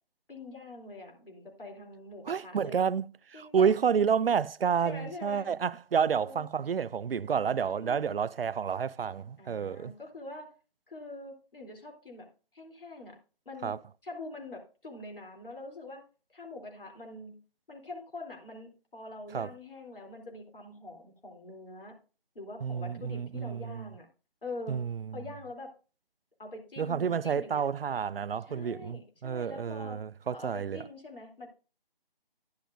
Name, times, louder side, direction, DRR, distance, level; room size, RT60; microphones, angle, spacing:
voice 1, 0.3-2.9 3.3-3.7 4.8-5.5 6.0-6.4 7.8-8.2 9.4-10.5 10.9-13.2 13.4-13.7 14.0-16.0 16.3-17.4 17.7-22.0 22.3-24.1 24.4-24.9 25.1-25.7 26.4-27.6 28.5-30.0 30.3-31.5, left 2 dB, 65° left, 3.1 m, -44 dB
voice 2, 2.3-3.1 3.3-9.9 13.6-13.8 19.3-19.5 22.6-23.8 24.7-25.2 26.8-30.8, right 7 dB, 75° right, 0.4 m, -30 dB
10.5 x 10.5 x 2.5 m
figure-of-eight pair, 180°, 29 cm